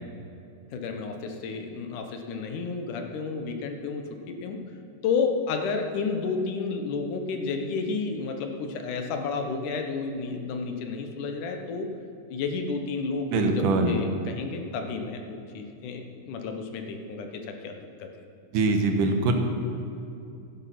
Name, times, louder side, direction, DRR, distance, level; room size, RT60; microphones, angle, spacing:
voice 1, 0.7-4.6 5.0-11.9 12.3-18.1, left 4 dB, 80° left, 4 dB, 2.6 m, -31 dB
voice 2, 13.3-14.0 18.5-19.3, right 3 dB, 85° right, 4 dB, 2.8 m, -23 dB
15.5 x 10.5 x 5.9 m, 2.6 s
omnidirectional pair, 3.6 m